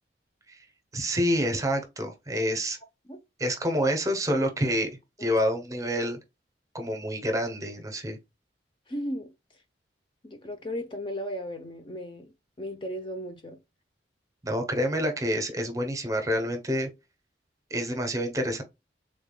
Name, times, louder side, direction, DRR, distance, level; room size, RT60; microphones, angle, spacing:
voice 1, 0.9-2.8 3.4-4.9 5.2-6.2 6.7-8.2 14.4-16.9 17.7-18.6, equal, 20° right, 0.8 m, -27 dB
voice 2, 8.9-9.3 10.2-12.3 12.6-13.6, equal, 30° left, 0.6 m, -35 dB
3.7 x 3.5 x 2.2 m
head